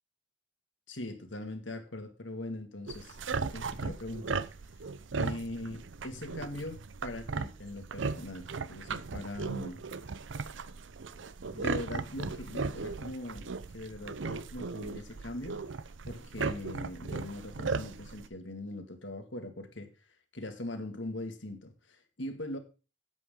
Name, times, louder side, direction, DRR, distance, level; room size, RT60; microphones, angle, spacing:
voice 1, 0.9-3.2 3.5-4.4 5.2-9.8 11.5-15.6 16.1-19.9 20.3-22.6, left 1 dB, 70° left, 6 dB, 2.0 m, -41 dB
sound 1, 2.9-18.3, right 4 dB, 70° right, 0.6 m, -37 dB
12.5 x 8.4 x 3.7 m, 0.32 s
head